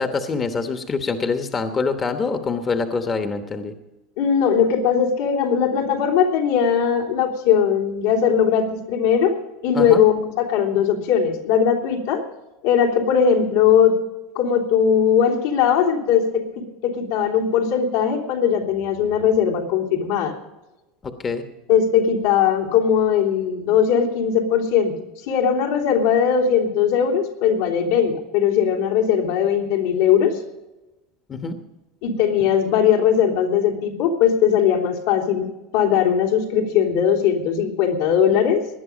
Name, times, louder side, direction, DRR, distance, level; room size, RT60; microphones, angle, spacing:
voice 1, 0.0-3.7 9.7-10.0 21.0-21.4 31.3-31.6, left 4 dB, 25° left, 6 dB, 1.1 m, -25 dB
voice 2, 4.2-9.4 9.6-12.2 12.6-14.0 14.3-20.3 21.7-24.9 25.3-30.4 32.0-35.5 35.7-38.6, left 8 dB, 80° left, -1 dB, 3.3 m, -19 dB
19.0 x 11.0 x 5.1 m, 1.0 s
supercardioid pair, 135°, 0 cm